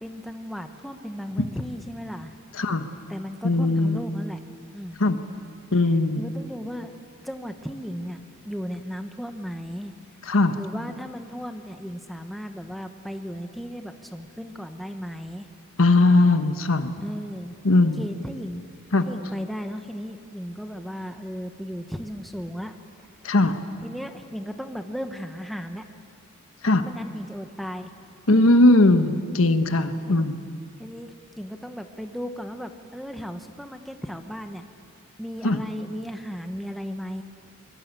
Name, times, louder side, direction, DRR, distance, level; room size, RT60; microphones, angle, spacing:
voice 1, 0.0-2.3 3.1-4.4 4.7-5.0 6.2-6.9 7.2-9.9 10.5-15.5 17.0-17.5 17.8-18.6 19.0-22.7 23.8-25.8 26.8-27.9 28.3-28.5 30.1-30.3 30.8-34.6 35.2-37.2, equal, ahead, 6 dB, 1.0 m, -35 dB
voice 2, 3.4-4.0 5.0-5.2 5.7-6.2 10.3-10.6 15.8-16.9 17.6-18.0 18.9-19.1 23.2-23.6 26.6-26.8 28.3-30.4 35.4-35.6, left 2 dB, 70° left, 8 dB, 1.3 m, -19 dB
24.0 x 22.5 x 8.3 m, 2.3 s
head